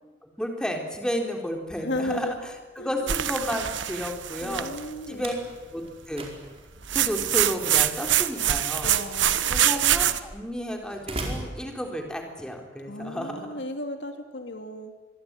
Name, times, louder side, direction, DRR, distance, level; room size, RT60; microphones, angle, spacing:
voice 1, 0.2-2.4 2.8-4.7 5.1-5.3 5.7-6.3 6.9-8.9 9.5-13.6, equal, 5° left, 2 dB, 4.0 m, -32 dB
Slam, 1.5-12.4, right 2 dB, 30° right, 4.8 m, -43 dB
voice 2, 1.7-2.4 2.8-2.9 4.4-5.3 8.8-9.5 12.8-14.9, left 1 dB, 65° left, 5 dB, 2.8 m, -34 dB
sound 1, 3.1-4.9 6.9-10.2, right 11 dB, 75° right, 1.2 m, -24 dB
25.5 x 22.5 x 9.2 m, 1.2 s
head